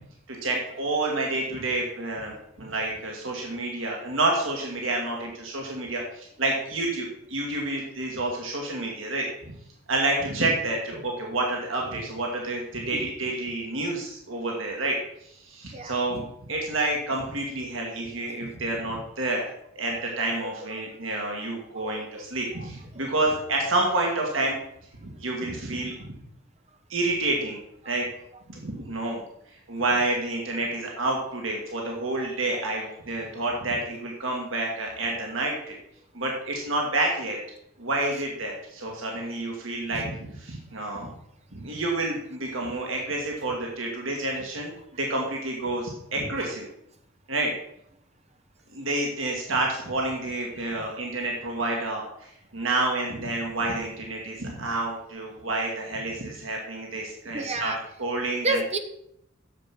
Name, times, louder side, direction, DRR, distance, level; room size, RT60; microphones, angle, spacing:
voice 1, 0.3-9.3 9.9-15.0 15.2-19.5 19.8-24.6 25.0-25.9 26.9-27.6 27.9-28.1 28.5-29.2 29.7-35.8 36.1-37.4 37.8-41.1 41.5-44.7 45.0-46.7 47.3-47.5 48.7-52.1 52.5-57.7 58.0-58.6, right 2 dB, 80° right, 0 dB, 2.0 m, -29 dB
voice 2, 19.9-20.2 21.7-22.2 22.6-22.7 22.9-23.0 27.8-27.9 57.3-57.8 58.4-58.8, right 2 dB, 35° right, 6 dB, 1.1 m, -31 dB
9.8 x 7.2 x 6.1 m, 0.75 s
head